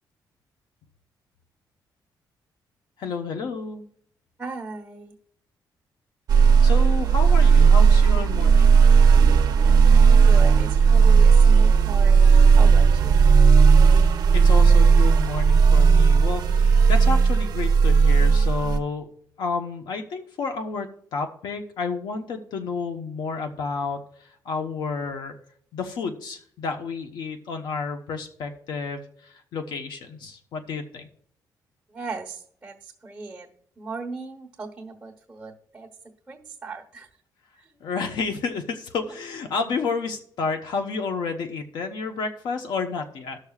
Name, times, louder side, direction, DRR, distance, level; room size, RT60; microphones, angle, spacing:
voice 1, 3.0-3.8 6.6-8.7 14.3-19.1 19.4-24.0 24.4-25.3 25.7-31.1 37.8-43.4, left 4 dB, 75° left, 5 dB, 1.0 m, -30 dB
voice 2, 4.4-5.1 9.5-13.2 31.9-33.5 33.8-35.9 36.3-37.1 37.6-37.8, right 3 dB, 10° right, -1 dB, 1.2 m, -37 dB
sound 1, 6.3-18.8, right 5 dB, 60° right, 0.8 m, -15 dB
17.0 x 6.3 x 2.4 m, 0.63 s
cardioid pair, 165°, 8 cm